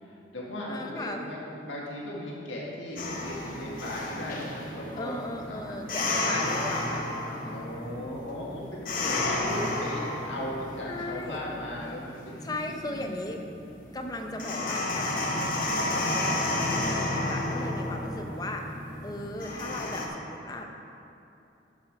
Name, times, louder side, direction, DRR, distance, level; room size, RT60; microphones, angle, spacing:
voice 1, 0.0-1.4 1.6-6.2 7.5-13.3, left 1 dB, 85° left, -4 dB, 1.7 m, -37 dB
voice 2, 0.7-1.3 5.0-7.1 7.5-7.6 10.9-11.4 12.4-13.4 13.9-18.6 19.0-20.7, left 1 dB, 20° left, 3 dB, 0.6 m, -37 dB
sound 1, 3.0-20.1, left 2 dB, 45° left, 1.0 m, -32 dB
12.0 x 5.5 x 4.7 m, 2.8 s
head